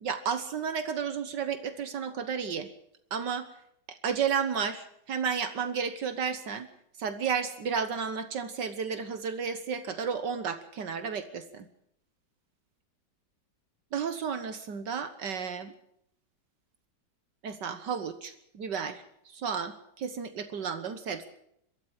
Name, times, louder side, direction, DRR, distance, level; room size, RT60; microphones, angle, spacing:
voice 1, 0.0-2.7 3.1-3.5 3.9-6.7 7.0-11.7 13.9-15.7 17.4-21.3, right 6 dB, 70° right, 10 dB, 1.8 m, -32 dB
22.5 x 13.5 x 8.8 m, 0.74 s
omnidirectional pair, 1.9 m